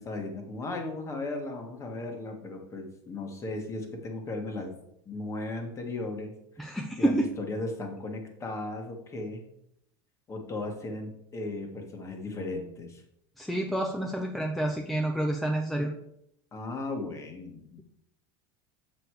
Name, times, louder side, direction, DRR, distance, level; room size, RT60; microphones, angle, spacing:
voice 1, 0.0-4.8 5.0-9.4 10.3-13.0 16.5-17.8, left 2 dB, 25° left, 4 dB, 1.6 m, -36 dB
voice 2, 6.6-7.3 13.4-15.9, right 1 dB, ahead, 2 dB, 0.6 m, -28 dB
6.8 x 6.6 x 4.7 m, 0.76 s
supercardioid pair, 140°, 12 cm